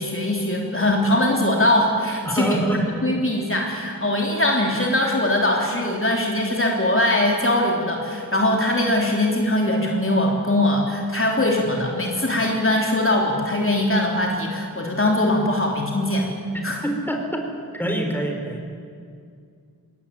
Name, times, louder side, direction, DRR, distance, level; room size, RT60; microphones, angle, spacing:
voice 1, 0.0-2.6 3.0-16.3 16.6-16.8, left 1 dB, 35° left, -1 dB, 3.4 m, -21 dB
voice 2, 2.2-2.8 16.8-17.4 17.7-18.6, right 1 dB, 5° left, 2 dB, 4.6 m, -25 dB
21.0 x 18.0 x 9.3 m, 2.3 s
wide cardioid pair, 50°, 36 cm